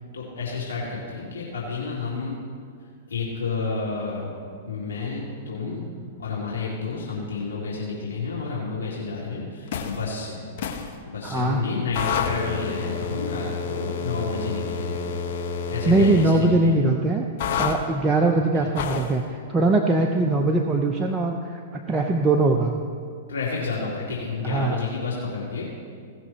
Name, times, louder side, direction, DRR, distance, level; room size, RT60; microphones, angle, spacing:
voice 1, 0.1-2.3 3.1-4.3 4.6-5.9 6.2-10.4 11.1-15.0 15.3-15.4 15.7-16.8 18.4-18.7 23.3-25.7, left 4 dB, 75° left, -5 dB, 2.3 m, -30 dB
sound 1, 9.7-10.0 10.6-10.9 11.9-16.3 17.4-17.8 18.8-19.1, left 6 dB, 55° left, 1.1 m, -29 dB
voice 2, 11.2-11.6 15.9-17.3 17.6-22.8 24.4-24.8, right 2 dB, 15° right, 2 dB, 0.7 m, -21 dB
17.0 x 6.1 x 4.3 m, 2.2 s
hypercardioid pair, 105°, 0 cm